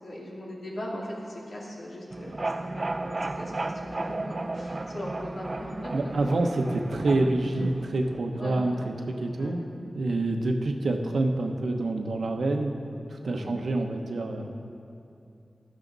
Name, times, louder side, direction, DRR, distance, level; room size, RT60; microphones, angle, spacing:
voice 1, 0.0-6.1 8.3-8.7 9.4-9.6 13.2-13.6, equal, 80° left, -5 dB, 2.8 m, -39 dB
Latido de bebé, 2.1-8.2, right 2 dB, 40° right, 0.5 m, -34 dB
voice 2, 5.9-12.8 13.1-14.5, right 2 dB, 90° right, 3 dB, 1.0 m, -27 dB
15.5 x 11.5 x 4.0 m, 2.7 s
wide cardioid pair, 100°, 0 cm